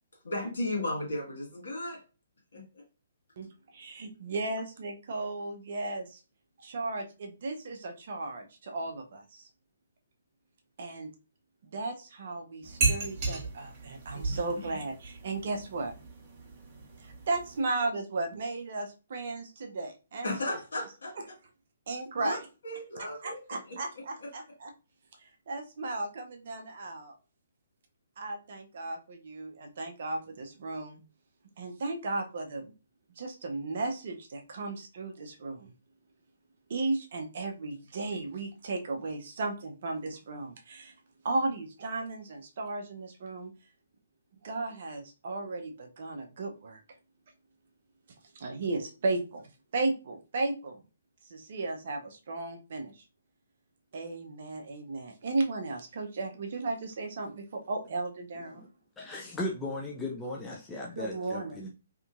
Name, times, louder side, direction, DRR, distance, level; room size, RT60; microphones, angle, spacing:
voice 1, 0.2-2.0 2.5-2.8 14.1-14.7 20.2-21.1 22.2-22.4 22.6-23.8 24.2-24.3, left 1 dB, 60° left, -1 dB, 1.3 m, -35 dB
voice 2, 3.7-6.2 6.6-9.5 10.8-11.1 11.6-15.9 17.0-20.3 21.9-22.5 23.2-24.7 25.2-27.2 28.2-31.0 31.6-32.7 33.2-35.7 36.7-40.9 41.2-43.5 44.4-46.8 48.3-49.4 49.7-50.8 51.3-53.0 53.9-58.7 61.0-61.6, right 2 dB, 50° right, 3 dB, 0.5 m, -35 dB
sound 1, 12.6-17.6, right 3 dB, 30° right, 0.9 m, -34 dB
voice 3, 59.0-61.7, left 1 dB, 10° left, -2 dB, 0.4 m, -37 dB
2.8 x 2.5 x 2.4 m, 0.32 s
figure-of-eight pair, 130°, 0 cm